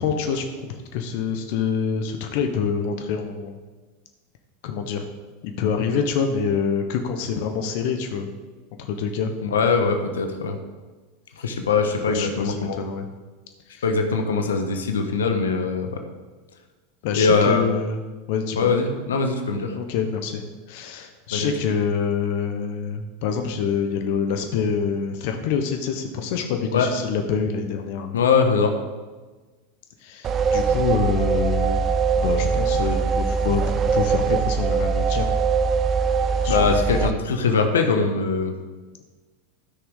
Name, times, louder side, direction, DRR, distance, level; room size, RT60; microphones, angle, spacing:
voice 1, 0.0-3.6 4.6-5.1 5.4-8.3 8.8-9.3 11.4-11.5 12.1-13.1 13.7-13.8 17.0-18.0 18.3-18.7 19.7-28.2 30.0-31.9 32.1-35.4 36.4-37.0, left 6 dB, 60° left, 5 dB, 1.1 m, -26 dB
voice 2, 9.4-10.6 11.4-12.8 13.8-16.0 17.2-17.6 18.6-19.7 21.3-21.5 26.7-26.9 28.1-28.7 36.5-38.5, left 4 dB, 80° left, 5 dB, 1.2 m, -22 dB
sound 1, 30.2-37.1, right 5 dB, 35° right, 0.7 m, -22 dB
13.5 x 6.2 x 4.9 m, 1.3 s
hypercardioid pair, 90°, 0 cm